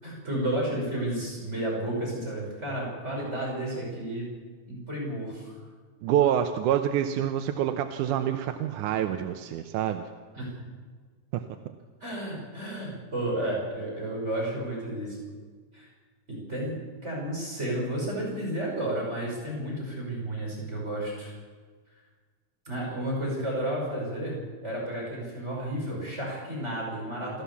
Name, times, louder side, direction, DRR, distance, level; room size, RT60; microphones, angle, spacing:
voice 1, 0.0-4.3 4.7-5.5 10.3-10.5 12.0-15.2 15.7-15.9 16.3-21.3 22.6-24.4 24.6-27.4, right 1 dB, 20° right, -3 dB, 6.1 m, -32 dB
voice 2, 6.0-10.0 11.3-11.4, right 10 dB, 90° right, 7 dB, 2.3 m, -26 dB
28.0 x 13.0 x 7.1 m, 1.5 s
omnidirectional pair, 3.5 m